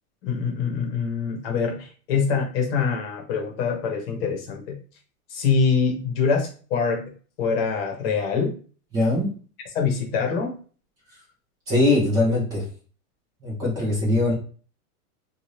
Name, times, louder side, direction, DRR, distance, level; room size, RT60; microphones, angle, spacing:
voice 1, 0.2-4.8 5.3-7.1 7.4-8.5 9.7-10.6, left 5 dB, 40° left, 2 dB, 1.0 m, -24 dB
voice 2, 8.9-9.3 11.7-12.6 13.4-14.3, left 2 dB, 10° right, -5 dB, 0.4 m, -21 dB
2.7 x 2.4 x 3.1 m, 0.39 s
supercardioid pair, 165°, 45 cm